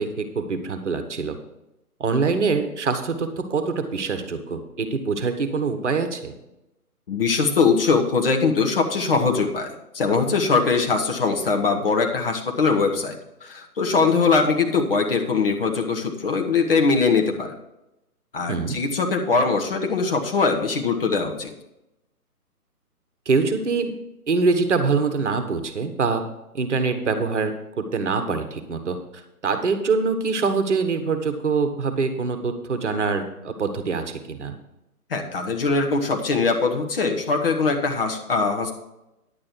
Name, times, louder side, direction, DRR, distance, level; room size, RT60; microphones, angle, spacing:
voice 1, 0.0-1.4 2.0-6.3 18.5-18.8 23.3-23.9 24.3-26.2 26.5-29.0 29.4-34.5, right 4 dB, 50° right, 8 dB, 1.3 m, -24 dB
voice 2, 7.1-17.5 18.3-21.5 35.1-38.7, left 4 dB, 40° left, 2 dB, 1.3 m, -22 dB
10.0 x 8.7 x 4.5 m, 0.91 s
figure-of-eight pair, 145°, 46 cm